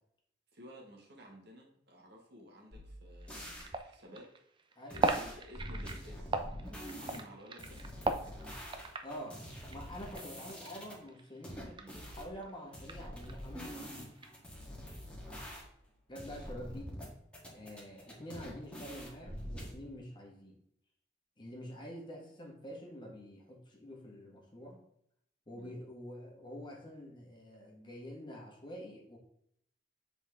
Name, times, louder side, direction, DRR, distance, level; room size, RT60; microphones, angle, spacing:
voice 1, 0.5-4.3 4.9-7.8 10.3-10.5 11.8-12.0 14.7-14.9 25.5-25.7, equal, 65° right, -1 dB, 1.7 m, -54 dB
sound 1, 2.7-3.7 4.9-7.2 7.6-10.9 11.4-12.3 12.7-15.9 16.2-17.1 17.3-19.7, equal, 5° left, 1.5 m, -45 dB
sound 2, 3.2-11.9 12.2-14.4, right 3 dB, 25° right, 0.5 m, -38 dB
voice 2, 9.0-9.4 9.7-14.0 16.1-16.9 17.5-20.6 21.4-24.8 25.5-29.2, equal, 25° left, -1 dB, 1.5 m, -47 dB
7.2 x 4.1 x 3.5 m, 0.72 s
head